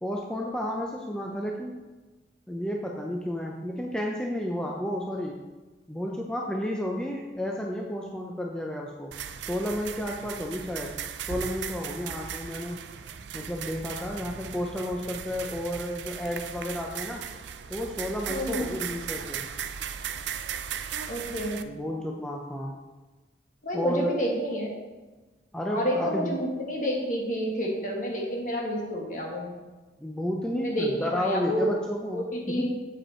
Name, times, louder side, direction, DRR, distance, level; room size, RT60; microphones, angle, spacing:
voice 1, 0.0-1.8 2.5-5.4 5.9-9.1 9.4-11.0 11.2-12.8 13.3-17.3 17.7-19.4 21.6-22.8 23.7-24.2 25.5-26.4 30.0-32.2 32.5-32.9, equal, 5° left, -1 dB, 0.5 m, -32 dB
sound 1, 9.1-21.6, right 8 dB, 80° right, 0.4 m, -37 dB
voice 2, 18.3-18.7 21.1-21.6 23.6-24.7 25.7-29.6 30.5-31.7 32.1-32.7, equal, 45° left, -1 dB, 1.6 m, -29 dB
7.9 x 5.3 x 4.3 m, 1.2 s
head